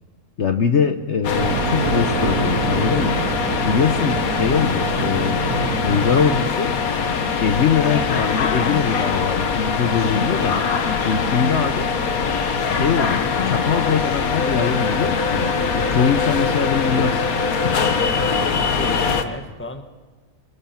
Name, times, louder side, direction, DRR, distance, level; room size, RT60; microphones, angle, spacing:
voice 1, 0.4-3.2 3.6-5.4 5.8-6.7 7.4-10.6 11.0-11.9 12.7-17.2, left 6 dB, 55° left, 7 dB, 1.2 m, -22 dB
sound 1, 1.2-19.2, left 5 dB, 70° left, 1.7 m, -22 dB
sound 2, 1.4-6.5, right 7 dB, 90° right, 1.4 m, -27 dB
voice 2, 18.1-19.8, left 1 dB, 10° left, 6 dB, 1.3 m, -34 dB
25.0 x 21.5 x 6.0 m, 1.3 s
omnidirectional pair, 1.5 m